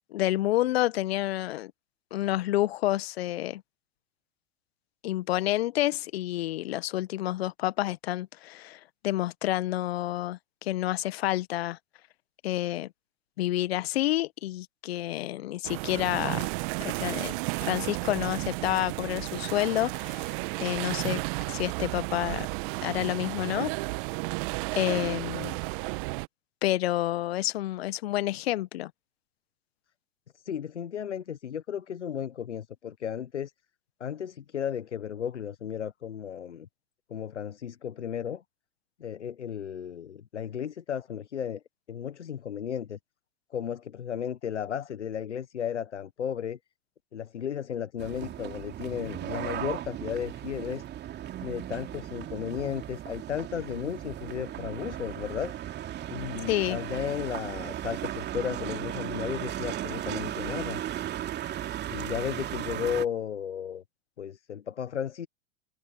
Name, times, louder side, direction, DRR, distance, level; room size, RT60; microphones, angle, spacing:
voice 1, 0.1-1.7 2.1-3.6 5.0-11.8 12.4-12.9 13.4-16.5 16.8-20.3 20.6-21.2 21.5-22.5 22.8-23.7 24.8-25.6 26.6-28.9 56.5-56.8, left 15 dB, 60° left, 1.5 m, -29 dB
sound 1, 15.6-26.3, right 30 dB, 45° right, 1.6 m, -33 dB
voice 2, 30.3-33.5 34.0-36.7 37.1-38.4 39.0-41.6 41.9-43.0 43.5-46.6 47.1-50.8 51.4-55.5 56.1-60.8 61.9-63.8 64.2-65.3, left 8 dB, 80° left, 1.3 m, -34 dB
sound 2, 48.0-63.1, right 12 dB, 30° right, 2.9 m, -36 dB
figure-of-eight pair, 95°, 35 cm